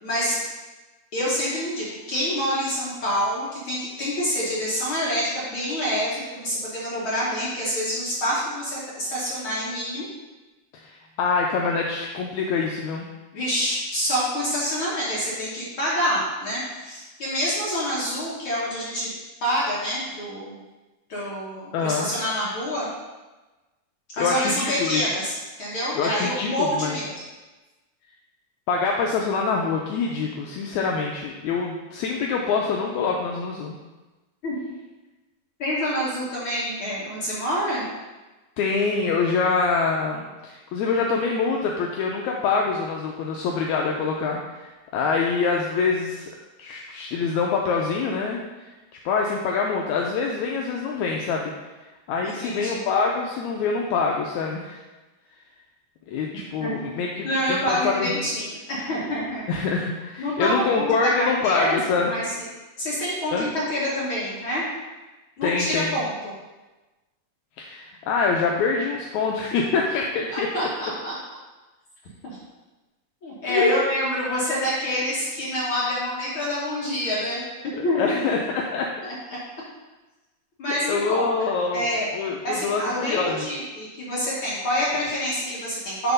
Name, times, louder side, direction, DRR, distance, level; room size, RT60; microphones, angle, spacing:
voice 1, 0.0-0.4 1.1-10.1 13.3-19.1 19.4-20.6 21.1-22.9 24.2-27.1 34.4-34.5 35.6-37.9 52.2-52.8 56.6-56.7 57.2-59.4 60.2-61.8 62.1-62.4 62.8-64.6 65.4-66.3 70.3-71.2 72.2-72.4 73.2-78.2 79.0-79.1 80.6-82.1 82.4-86.1, equal, 60° left, -7 dB, 1.4 m, -27 dB
voice 2, 10.8-13.1 21.7-22.1 24.2-25.0 26.0-27.0 28.7-33.8 38.6-46.3 46.6-48.7 49.1-51.5 52.1-54.8 56.1-58.2 59.5-62.1 63.3-63.5 65.4-66.0 67.6-70.5 73.5-73.7 77.7-78.9 80.7-81.9 82.1-83.5, left 4 dB, 80° left, 0 dB, 1.7 m, -25 dB
8.0 x 3.5 x 5.2 m, 1.2 s
omnidirectional pair, 3.8 m